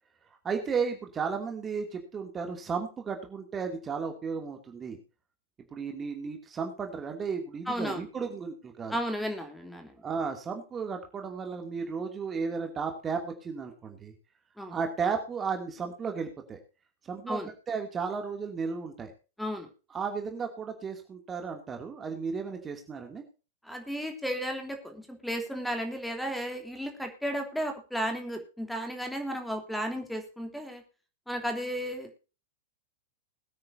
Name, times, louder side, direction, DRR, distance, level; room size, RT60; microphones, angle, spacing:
voice 1, 0.4-5.0 5.7-9.0 10.0-14.1 14.7-16.6 17.0-19.1 19.9-23.2, right 5 dB, 20° right, 4 dB, 2.6 m, -34 dB
voice 2, 7.7-8.1 8.9-9.9 14.6-14.7 17.3-17.5 19.4-19.7 23.6-30.8 31.3-32.1, equal, ahead, 5 dB, 3.2 m, -34 dB
21.5 x 9.6 x 2.7 m, 0.33 s
figure-of-eight pair, 100°, 0 cm